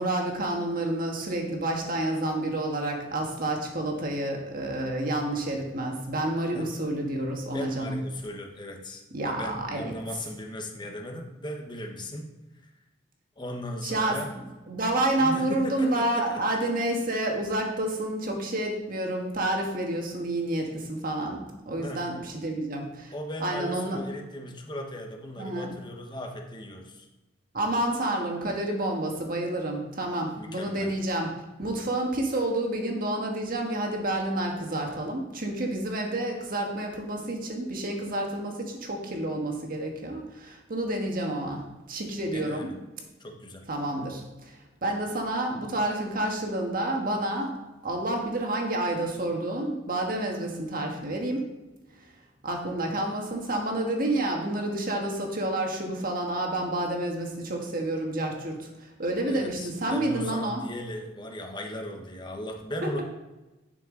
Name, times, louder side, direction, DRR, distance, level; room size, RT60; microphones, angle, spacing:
voice 1, 0.0-8.0 9.1-9.9 13.8-14.2 14.7-23.1 23.4-24.0 25.4-25.7 27.5-31.3 31.6-42.7 43.7-47.5 47.8-51.5 52.4-60.6 62.8-63.0, right 1 dB, 50° right, 1 dB, 1.6 m, -29 dB
voice 2, 7.5-12.3 13.4-14.3 15.2-16.6 21.8-22.0 23.1-27.1 30.4-30.9 42.3-42.8 43.2-43.7 59.2-63.0, left 1 dB, 25° left, 2 dB, 1.1 m, -37 dB
10.5 x 5.9 x 3.9 m, 1.1 s
head